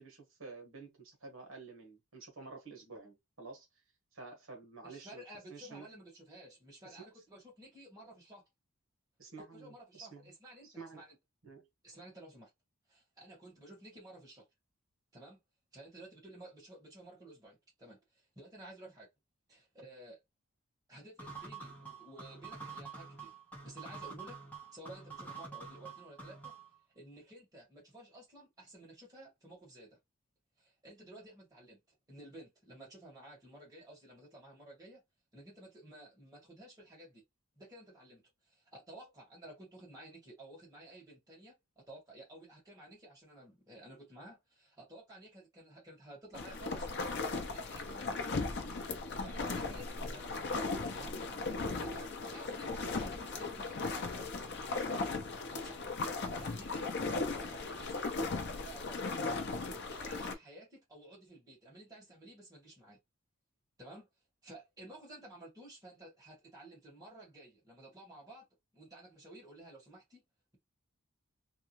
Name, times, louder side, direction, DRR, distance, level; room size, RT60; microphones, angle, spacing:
voice 1, 0.0-3.7 4.1-5.2 5.5-5.9 6.8-7.0 9.2-10.3 10.6-11.0 11.4-11.7 50.0-50.2, right 4 dB, 65° right, 1.2 m, -50 dB
voice 2, 4.8-8.4 9.4-11.2 11.8-12.5 12.9-14.5 15.1-15.4 15.7-19.1 19.5-20.2 20.9-23.3 23.6-24.4 24.7-26.5 26.9-30.0 30.6-31.8 32.1-35.0 35.3-37.2 37.6-46.9 47.2-48.3 49.2-50.3 50.9-51.2 51.7-55.2 55.5-56.0 56.4-56.9 57.3-59.2 59.6-63.0 63.8-64.1 64.4-68.5 68.7-70.2, right 1 dB, 15° right, 1.8 m, -53 dB
sound 1, 21.2-26.7, right 4 dB, 5° left, 0.7 m, -47 dB
sound 2, 46.3-60.3, left 3 dB, 50° left, 0.6 m, -37 dB
3.5 x 2.3 x 2.9 m
head